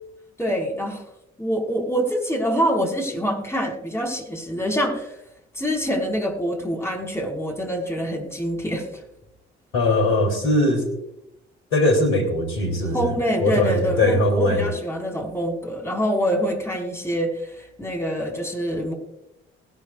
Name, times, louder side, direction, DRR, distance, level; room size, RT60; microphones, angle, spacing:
voice 1, 0.4-1.0 1.4-5.2 5.5-8.9 12.9-18.9, equal, 10° left, 0 dB, 5.1 m, -25 dB
voice 2, 9.7-10.9 11.7-13.1 13.4-14.7, left 1 dB, 75° left, 3 dB, 3.5 m, -20 dB
20.0 x 11.5 x 2.5 m, 0.84 s
figure-of-eight pair, 45°, 31 cm